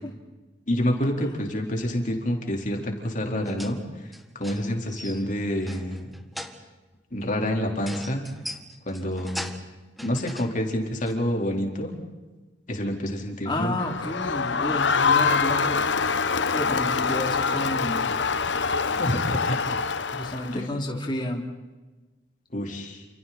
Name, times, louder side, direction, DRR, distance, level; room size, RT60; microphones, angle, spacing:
voice 1, 0.7-3.8 4.3-6.1 7.1-8.3 8.8-9.5 10.0-12.0 12.7-13.7 18.9-19.8 20.5-20.6 22.5-23.0, equal, 45° left, 2 dB, 4.3 m, -28 dB
sound 1, 3.4-3.8 4.1-5.3 5.6-6.7 7.8-9.7 10.0-10.6 11.0-11.1, equal, ahead, 1.7 m, -39 dB
voice 2, 13.5-15.9 16.5-18.1 20.1-21.4, left 1 dB, 25° left, 1 dB, 3.4 m, -31 dB
Crowd, 13.8-20.6, left 5 dB, 75° left, 1.0 m, -25 dB
29.5 x 28.5 x 4.4 m, 1.2 s
head